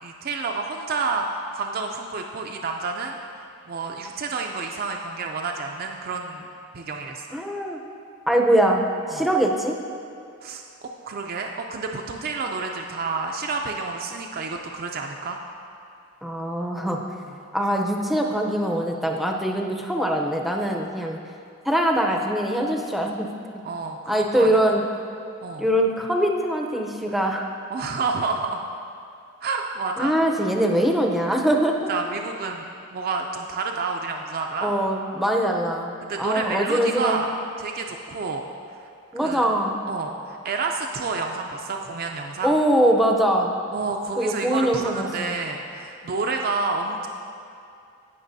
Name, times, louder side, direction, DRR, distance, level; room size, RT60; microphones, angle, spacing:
voice 1, 0.0-3.2 3.7-6.5 6.7-7.4 9.1-9.3 10.4-15.4 17.2-17.4 20.6-20.9 23.6-24.8 25.4-25.7 27.7-28.7 29.4-30.2 31.9-34.7 36.0-38.5 38.8-38.9 39.2-39.5 39.9-42.6 43.7-47.1, right 4 dB, 45° right, 2 dB, 0.4 m, -29 dB
voice 2, 7.3-7.8 8.3-9.8 16.2-17.0 17.5-21.2 21.7-23.3 24.1-24.8 25.6-27.5 30.0-31.8 34.6-37.2 39.1-39.8 42.4-43.6 44.2-45.4, right 1 dB, ahead, 1 dB, 0.6 m, -22 dB
17.0 x 5.9 x 2.7 m, 2.5 s
head